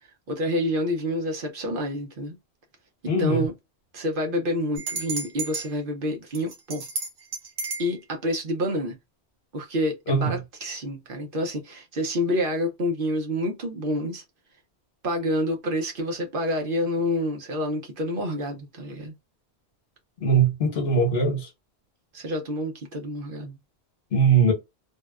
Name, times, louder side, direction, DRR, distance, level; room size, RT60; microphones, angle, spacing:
voice 1, 0.3-2.4 3.2-3.5 3.9-6.8 7.8-9.0 9.5-14.2 15.0-19.1 22.1-23.6, equal, 55° right, 0.8 m, -28 dB
voice 2, 3.1-3.5 10.1-10.4 20.2-21.5 24.1-24.5, right 4 dB, 70° left, 1.2 m, -21 dB
sound 1, 4.8-5.7 6.3-7.9, right 3 dB, 75° right, 1.1 m, -32 dB
2.7 x 2.1 x 2.3 m
omnidirectional pair, 1.1 m